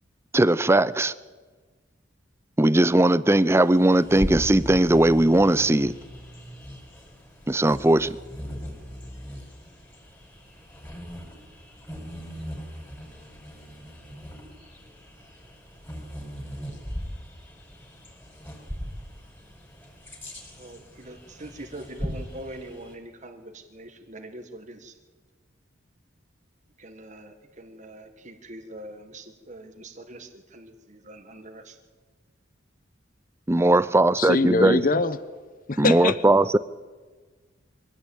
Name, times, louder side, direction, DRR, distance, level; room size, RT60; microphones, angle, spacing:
voice 1, 0.3-1.1 2.6-6.0 7.5-8.2 33.5-34.8 35.8-36.6, right 1 dB, 15° right, 0.6 m, -19 dB
Bird vocalization bird call bird song, 3.5-22.9, equal, 10° left, 5.3 m, -39 dB
voice 2, 20.6-24.9 26.8-31.8, right 1 dB, 40° right, 1.6 m, -43 dB
voice 3, 34.1-35.2 35.7-36.2, left 3 dB, 45° left, 1.0 m, -23 dB
23.5 x 16.0 x 8.6 m
head